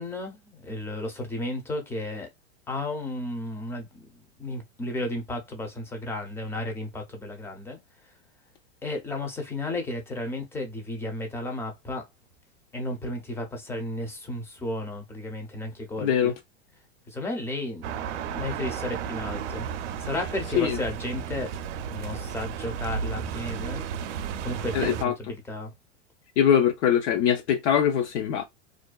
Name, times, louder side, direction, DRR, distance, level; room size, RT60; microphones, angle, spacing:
voice 1, 0.0-2.3 2.7-4.1 4.4-7.8 8.8-12.0 12.7-16.3 17.1-19.7 20.0-21.5 21.9-23.8 24.4-25.7, left 1 dB, 5° left, 0.5 m, -33 dB
voice 2, 16.0-16.3 20.5-20.8 24.7-25.1 26.4-28.4, left 9 dB, 70° left, 0.6 m, -22 dB
sound 1, 17.8-25.1, right 7 dB, 70° right, 0.5 m, -33 dB
2.5 x 2.2 x 2.2 m
hypercardioid pair, 125°, 37 cm